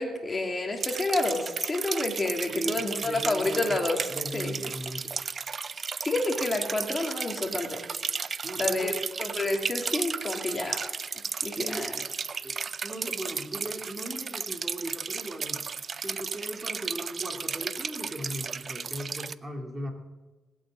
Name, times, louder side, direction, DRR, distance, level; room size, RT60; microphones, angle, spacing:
voice 1, 0.0-4.6 6.0-7.8 8.6-8.9 9.2-10.8 11.4-11.9, left 2 dB, 25° left, 2 dB, 2.7 m, -29 dB
sound 1, 0.8-19.3, right 5 dB, 40° right, 0.5 m, -34 dB
voice 2, 2.5-3.8 4.1-5.1 8.4-9.0 11.6-12.1 12.4-12.6 12.8-15.6 16.0-19.9, right 1 dB, 20° right, 3 dB, 2.4 m, -37 dB
19.5 x 8.8 x 7.7 m, 1.2 s
cardioid pair, 90°, 0 cm